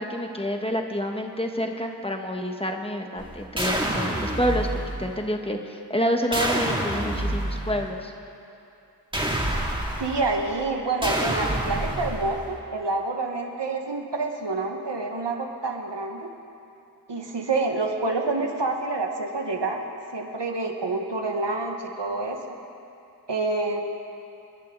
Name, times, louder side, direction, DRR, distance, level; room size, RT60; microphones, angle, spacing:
voice 1, 0.0-8.1, equal, 15° left, 3 dB, 1.3 m, -28 dB
sound 1, 3.2-5.2 6.3-7.9 9.1-10.6 11.0-12.6, right 1 dB, 10° right, 2.7 m, -28 dB
voice 2, 10.0-16.3 17.1-19.9 20.1-22.6 23.3-23.8, right 3 dB, 85° right, 2 dB, 1.6 m, -28 dB
29.5 x 10.5 x 4.0 m, 2.7 s
wide cardioid pair, 65°, 41 cm